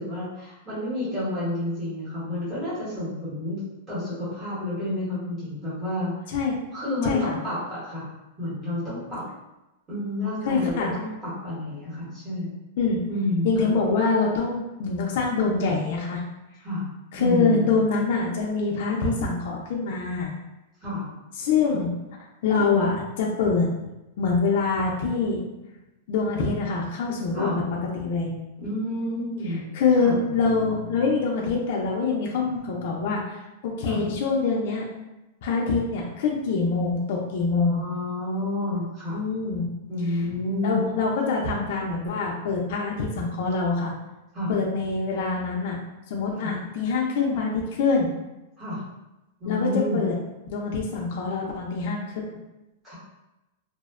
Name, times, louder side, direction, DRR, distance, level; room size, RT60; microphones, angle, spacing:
voice 1, 0.0-3.6 3.9-6.1 6.7-8.1 8.4-9.2 9.9-12.6 13.1-13.7 16.6-16.8 17.2-17.8 20.8-21.1 21.7-21.8 27.3-27.6 28.6-29.7 30.0-30.2 33.8-34.1 37.6-39.2 39.9-40.8 44.3-44.5 46.3-46.5 48.6-48.8 49.4-50.0 52.8-52.9, left 1 dB, 10° right, -11 dB, 0.9 m, -30 dB
voice 2, 7.1-7.4 10.4-10.9 12.8-13.0 13.4-16.2 17.1-20.3 21.4-21.9 22.4-23.7 24.2-25.4 26.1-28.3 29.5-33.4 33.6-34.9 35.4-37.8 39.1-39.7 40.3-40.4 40.6-43.9 44.5-45.8 46.1-48.1 49.5-50.1 50.5-52.4, left 4 dB, 45° left, -1 dB, 0.3 m, -25 dB
2.5 x 2.0 x 2.4 m, 0.98 s
supercardioid pair, 175°, 0 cm